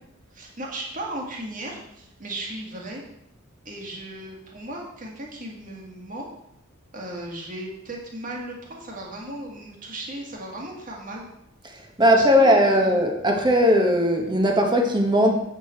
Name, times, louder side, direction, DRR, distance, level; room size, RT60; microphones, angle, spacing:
voice 1, 0.3-3.0 3.7-6.3 6.9-11.3 12.1-13.0, right 1 dB, 40° right, -1 dB, 1.9 m, -36 dB
voice 2, 12.0-15.3, equal, 20° right, 3 dB, 1.2 m, -18 dB
7.9 x 6.5 x 4.4 m, 0.78 s
head